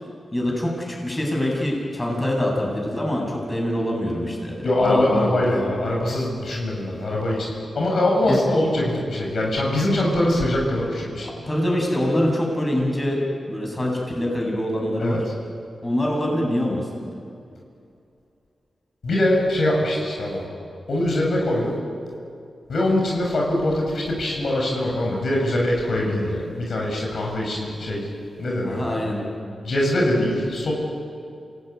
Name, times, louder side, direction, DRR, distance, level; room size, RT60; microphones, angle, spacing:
voice 1, 0.3-5.5 8.3-8.4 11.2-13.2 13.5-15.2 15.8-16.9 28.6-29.2, left 1 dB, 25° left, -1 dB, 7.9 m, -24 dB
voice 2, 4.6-11.3 15.0-15.2 19.0-20.4 20.9-21.8 22.7-28.1 28.4-29.0 29.6-30.7, left 1 dB, 70° left, -1 dB, 7.2 m, -23 dB
28.0 x 19.0 x 9.6 m, 2.5 s
cardioid pair, 75°, 0 cm